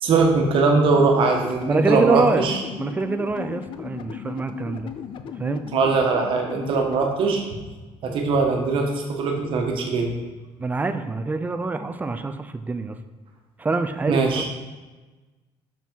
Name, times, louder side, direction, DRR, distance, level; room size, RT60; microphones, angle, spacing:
voice 1, 0.0-2.6 5.7-7.4 8.0-10.1 14.1-14.5, right 4 dB, 60° right, 2 dB, 1.2 m, -21 dB
sound 1, 0.7-7.1, left 9 dB, 55° left, 0.5 m, -36 dB
voice 2, 1.7-2.5 2.8-4.9 5.4-5.6 10.6-13.0 13.6-14.5, right 3 dB, 15° right, 9 dB, 0.5 m, -25 dB
5.9 x 5.9 x 4.5 m, 1.2 s
cardioid pair, 125°, 10 cm